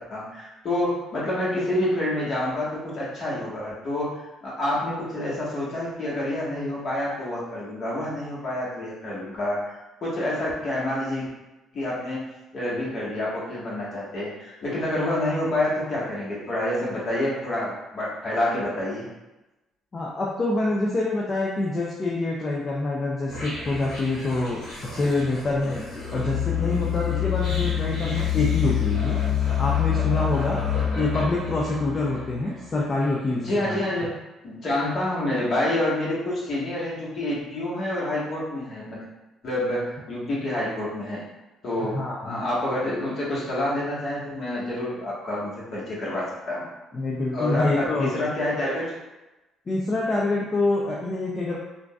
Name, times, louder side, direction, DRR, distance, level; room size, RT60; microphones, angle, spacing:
voice 1, 0.1-11.3 11.7-12.2 12.5-19.0 33.4-34.1 34.4-39.0 39.4-41.2 41.6-42.0 42.2-46.7 47.3-48.9, left 1 dB, 55° left, -7 dB, 1.5 m, -28 dB
voice 2, 19.9-25.8 26.1-29.2 29.6-33.8 41.8-42.4 46.9-48.1 49.7-51.6, left 2 dB, 35° left, -4 dB, 0.5 m, -26 dB
sound 1, 23.3-32.5, left 9 dB, 90° left, 1.2 m, -27 dB
3.7 x 2.5 x 2.3 m, 1.0 s
supercardioid pair, 80°, 0 cm